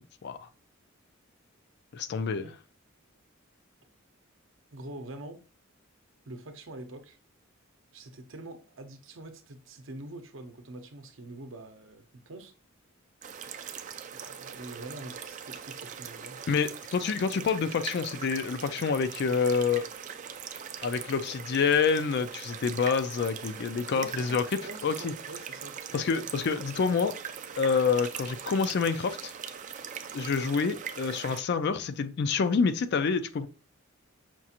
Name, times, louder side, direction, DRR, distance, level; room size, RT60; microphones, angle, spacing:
voice 1, 1.9-2.5 16.5-19.9 20.8-25.1 25.9-27.1 27.6-29.3 30.1-33.5, left 5 dB, 50° left, 0.4 m, -27 dB
voice 2, 4.7-5.4 6.3-7.2 7.9-12.5 14.1-16.4 24.0-25.9, right 2 dB, 65° right, 0.7 m, -45 dB
sound 1, 13.2-31.4, right 7 dB, 35° right, 0.4 m, -41 dB
5.9 x 2.5 x 2.8 m
head